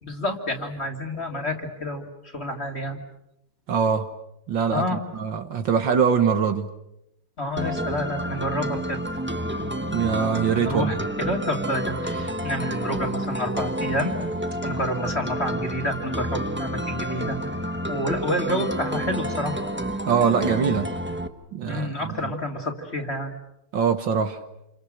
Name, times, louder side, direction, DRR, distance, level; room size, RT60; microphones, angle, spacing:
voice 1, 0.0-3.0 4.7-5.0 7.4-9.0 10.6-14.2 14.6-17.4 17.9-19.6 21.7-23.3, left 1 dB, 30° left, 3 dB, 2.9 m, -29 dB
voice 2, 3.7-4.1 4.5-6.7 9.9-11.0 20.1-20.9 21.5-22.3 23.7-24.4, right 6 dB, 65° right, 8 dB, 2.0 m, -23 dB
sound 1, 7.6-21.3, right 1 dB, 10° right, 0.7 m, -29 dB
28.5 x 28.5 x 6.6 m, 0.83 s
omnidirectional pair, 2.3 m